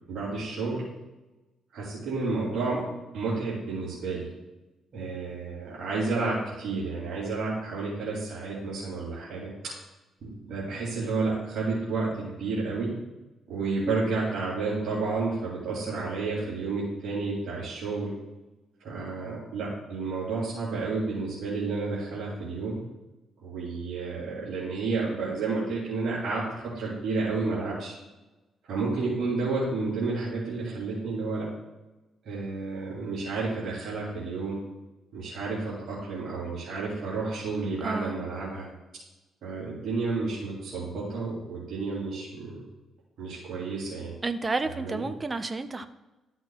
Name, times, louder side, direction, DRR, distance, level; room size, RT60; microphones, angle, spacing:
voice 1, 0.1-0.8 1.7-2.8 3.1-4.3 4.9-9.5 10.2-12.9 13.5-18.1 18.8-22.8 23.4-27.9 28.7-31.5 32.2-34.6 35.1-38.7 39.4-42.6 43.2-44.1 44.8-45.0, right 3 dB, 70° right, -7 dB, 3.0 m, -31 dB
voice 2, 37.8-38.2 44.2-45.9, right 3 dB, 25° right, 9 dB, 0.6 m, -31 dB
13.0 x 6.2 x 2.4 m, 1.1 s
cardioid pair, 90°, 0 cm